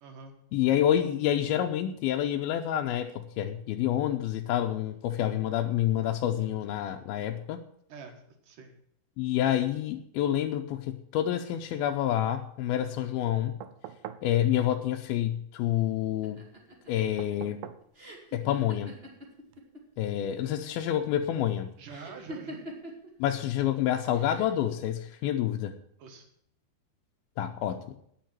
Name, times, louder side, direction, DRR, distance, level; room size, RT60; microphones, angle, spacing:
voice 1, 0.0-0.3 7.9-8.7 21.8-22.6 26.0-26.3, right 4 dB, 65° right, 4 dB, 3.0 m, -46 dB
voice 2, 0.5-7.6 9.2-13.5 14.2-16.4 16.9-17.6 18.3-19.0 20.0-21.7 23.2-25.7 27.4-28.0, left 11 dB, 80° left, 4 dB, 2.5 m, -28 dB
sound 1, 13.6-14.3 17.2-17.9 19.5-19.6, right 11 dB, 85° right, 2.6 m, -43 dB
sound 2, 16.2-19.8 20.1-20.8 21.9-23.1 24.1-24.6, equal, 20° right, 1.6 m, -44 dB
9.9 x 7.7 x 8.9 m, 0.68 s
omnidirectional pair, 4.4 m